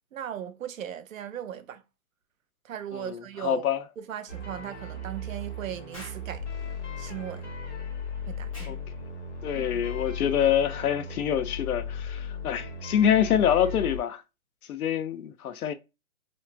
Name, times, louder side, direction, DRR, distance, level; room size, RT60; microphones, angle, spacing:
voice 1, 0.1-1.8 2.6-3.6 4.0-6.5 7.0-7.5 8.3-8.8 9.5-9.9, right 10 dB, 65° right, 0.5 m, -38 dB
voice 2, 2.9-3.8 8.7-8.8 9.4-14.2 14.7-15.7, left 9 dB, 85° left, 0.6 m, -26 dB
sound 1, 4.3-14.0, left 3 dB, 55° left, 1.1 m, -36 dB
Explosion, 5.9-6.3 8.5-8.8, left 1 dB, 25° left, 0.5 m, -45 dB
3.0 x 2.1 x 2.4 m
hypercardioid pair, 170°, 43 cm